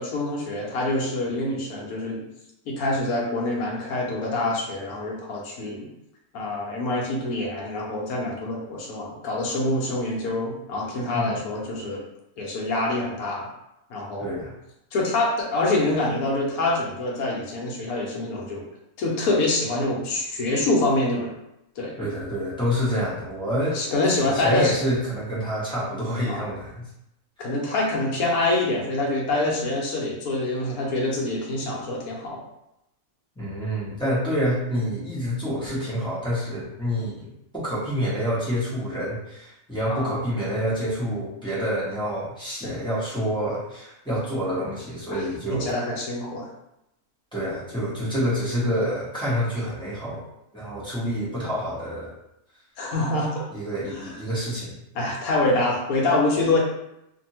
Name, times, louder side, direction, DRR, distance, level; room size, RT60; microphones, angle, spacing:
voice 1, 0.0-2.2 2.7-5.9 6.3-12.0 12.4-13.5 13.9-14.4 14.9-18.7 19.0-21.3 21.8-21.9 22.9-23.1 23.7-24.7 26.3-26.5 27.4-32.4 39.9-40.2 42.6-42.7 45.1-45.2 45.5-46.5 52.8-53.5 54.9-56.6, left 2 dB, 75° left, -2 dB, 1.2 m, -25 dB
voice 2, 14.2-14.5 22.0-23.8 24.2-26.9 33.4-37.3 37.5-45.7 47.3-50.2 50.5-52.1 53.5-54.7, equal, 5° left, -9 dB, 0.8 m, -27 dB
2.6 x 2.6 x 2.8 m, 0.84 s
omnidirectional pair, 1.6 m